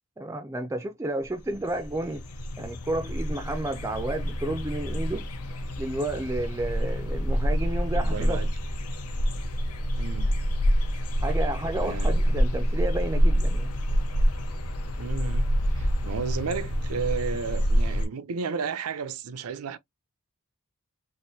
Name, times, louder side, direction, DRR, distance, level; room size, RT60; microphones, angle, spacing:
voice 1, 0.2-2.2 2.6-5.3 5.8-8.5 11.2-13.7, right 1 dB, 15° right, 0.3 m, -31 dB
sound 1, 1.3-1.4 1.5-18.1, equal, 90° left, 0.7 m, -27 dB
voice 2, 7.9-8.5 10.0-10.3 11.8-12.2 15.0-19.8, right 5 dB, 80° right, 0.5 m, -33 dB
3.5 x 2.5 x 2.6 m
head